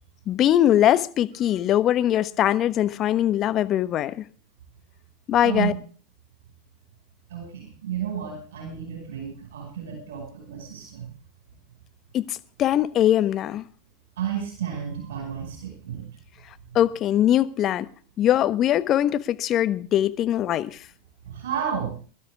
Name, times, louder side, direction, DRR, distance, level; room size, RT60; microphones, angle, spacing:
voice 1, 0.3-4.3 5.3-5.7 12.1-13.7 16.7-17.9 18.2-20.9, left 11 dB, 40° left, 1.2 m, -21 dB
voice 2, 7.3-11.1 14.2-16.1 21.2-21.9, right 8 dB, 70° right, 5.3 m, -31 dB
21.5 x 12.5 x 3.5 m
hypercardioid pair, 90°, 0 cm